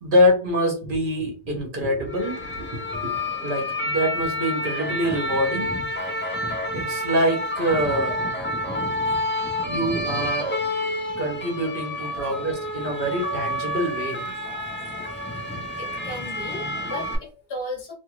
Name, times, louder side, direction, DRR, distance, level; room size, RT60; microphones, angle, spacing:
voice 1, 0.0-5.7 6.7-8.3 9.7-10.5 11.2-14.2, equal, 50° right, 0 dB, 1.1 m, -25 dB
sound 1, 2.1-17.2, left 1 dB, 15° left, 0.5 m, -29 dB
voice 2, 12.1-12.5 14.4-15.1 15.8-17.9, left 1 dB, 60° left, -1 dB, 1.2 m, -36 dB
2.7 x 2.4 x 3.0 m, 0.33 s
omnidirectional pair, 1.1 m